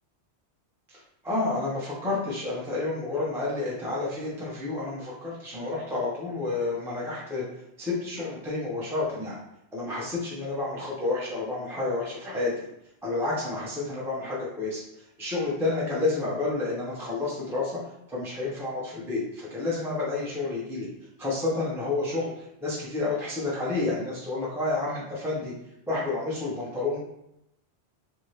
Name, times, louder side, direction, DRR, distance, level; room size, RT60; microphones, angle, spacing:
voice 1, 0.9-7.4 7.8-9.4 9.7-12.5 13.0-14.8 15.2-17.8 18.1-20.9 21.2-25.5 25.9-27.0, left 3 dB, 5° right, -6 dB, 0.5 m, -30 dB
2.7 x 2.7 x 3.2 m, 0.83 s
omnidirectional pair, 1.1 m